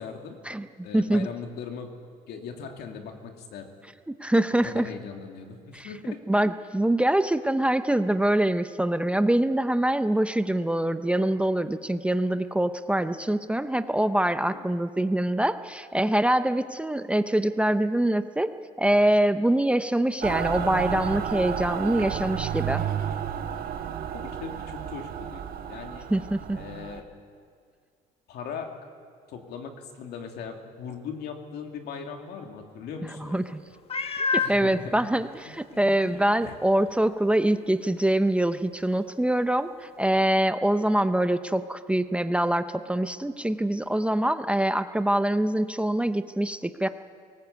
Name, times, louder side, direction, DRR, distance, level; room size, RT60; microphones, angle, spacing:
voice 1, 0.0-0.4 0.8-1.9 2.3-3.7 4.6-6.2 14.5-14.7 24.1-26.1 26.5-27.1 28.3-28.8 29.3-33.5 34.4-34.9 35.7-36.5, left 6 dB, 75° left, 3 dB, 2.6 m, -39 dB
voice 2, 0.9-1.3 4.2-4.9 5.7-5.9 6.3-18.5 18.8-22.8 26.1-26.6 33.0-33.6 34.2-46.9, right 1 dB, 5° right, 10 dB, 0.7 m, -24 dB
Mechanical fan, 20.2-27.0, right 9 dB, 60° right, 1.4 m, -32 dB
Meow, 33.9-34.6 35.4-35.5 36.0-36.1 40.0-40.1, left 5 dB, 35° left, 1.1 m, -27 dB
19.5 x 18.5 x 8.3 m, 2.1 s
cardioid pair, 110°, 17 cm